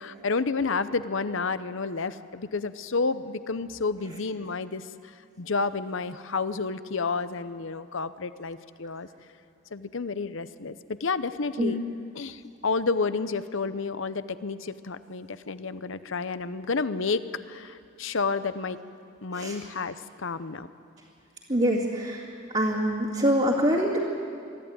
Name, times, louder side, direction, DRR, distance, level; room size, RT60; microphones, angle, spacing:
voice 1, 0.0-5.1 5.4-9.1 9.7-11.8 12.1-18.8 19.2-20.7, left 4 dB, 60° left, 13 dB, 0.7 m, -30 dB
voice 2, 21.5-22.3 22.5-24.0, equal, 30° right, -7 dB, 2.2 m, -24 dB
24.0 x 13.5 x 9.5 m, 2.4 s
head